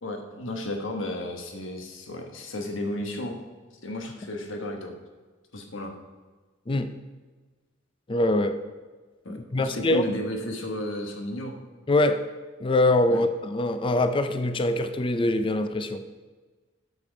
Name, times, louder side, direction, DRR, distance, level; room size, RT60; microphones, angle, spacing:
voice 1, 0.0-3.4 3.8-4.9 5.5-5.9 9.2-11.6 13.1-13.2, left 1 dB, 75° left, 3 dB, 1.3 m, -33 dB
voice 2, 8.1-8.6 9.3-10.0 11.9-12.2 12.6-16.0, left 2 dB, 25° left, 9 dB, 0.4 m, -23 dB
8.2 x 6.9 x 5.1 m, 1.3 s
head